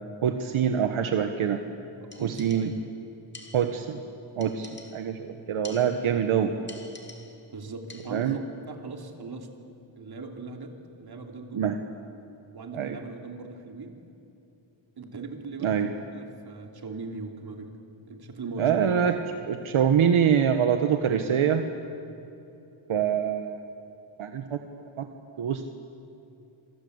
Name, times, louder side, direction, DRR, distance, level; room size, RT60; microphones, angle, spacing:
voice 1, 0.2-1.6 2.2-2.7 3.5-4.0 4.4-6.5 8.1-8.4 11.5-11.8 12.7-13.0 15.6-15.9 18.6-19.1 19.4-21.7 22.9-23.6 24.2-24.6 25.0-25.1 25.4-25.7, right 8 dB, 80° right, 6 dB, 1.4 m, -25 dB
voice 2, 2.0-2.8 6.1-6.2 7.5-9.5 10.0-11.7 12.5-14.0 15.0-17.8 18.1-19.1, right 3 dB, 50° right, 3 dB, 3.2 m, -40 dB
sound 1, 2.1-3.0 3.3-4.0 4.4-5.2 5.6-6.3 6.7-7.5 7.9-8.4, left 2 dB, 20° left, 2.4 m, -48 dB
27.0 x 23.5 x 8.1 m, 2.9 s
wide cardioid pair, 140°, 48 cm